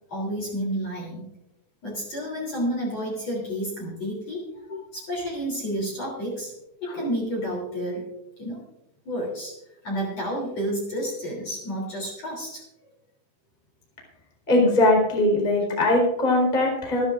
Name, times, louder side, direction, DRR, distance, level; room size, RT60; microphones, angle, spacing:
voice 1, 0.1-1.3 1.8-6.5 6.8-8.1 8.4-8.6 9.1-9.5 9.8-12.6, equal, 35° left, -2 dB, 3.8 m, -30 dB
voice 2, 14.5-17.1, left 1 dB, 10° left, -1 dB, 3.4 m, -20 dB
26.5 x 10.5 x 2.5 m, 0.86 s
omnidirectional pair, 5.7 m